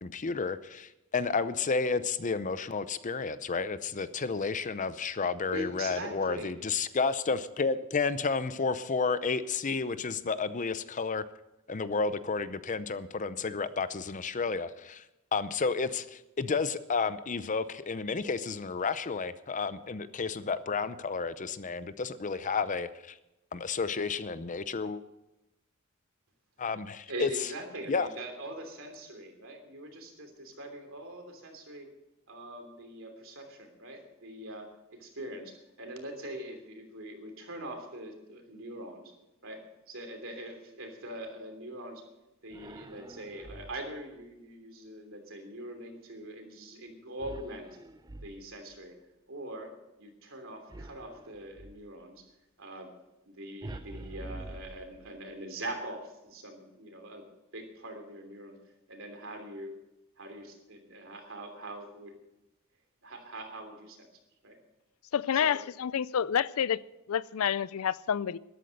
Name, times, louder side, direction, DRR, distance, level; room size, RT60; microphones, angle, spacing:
voice 1, 0.0-11.2 11.7-15.0 15.3-23.1 23.5-25.0 26.6-27.3 27.9-28.1, left 4 dB, 35° left, 0.6 m, -31 dB
voice 2, 5.5-6.6 27.1-32.0 32.3-39.1 39.4-42.0 42.4-47.8 48.2-49.0 49.3-52.3 52.6-52.9 53.2-58.6 58.9-59.8 60.2-62.2 63.0-64.1 64.4-64.6 65.3-65.6, right 1 dB, 70° right, 3.2 m, -43 dB
sound 1, 42.5-44.0 47.2-48.7 50.7-51.9 53.6-55.3, right 2 dB, 20° right, 0.5 m, -46 dB
voice 3, 65.1-66.8 67.1-68.4, left 8 dB, 85° left, 0.4 m, -28 dB
13.0 x 12.0 x 6.5 m
head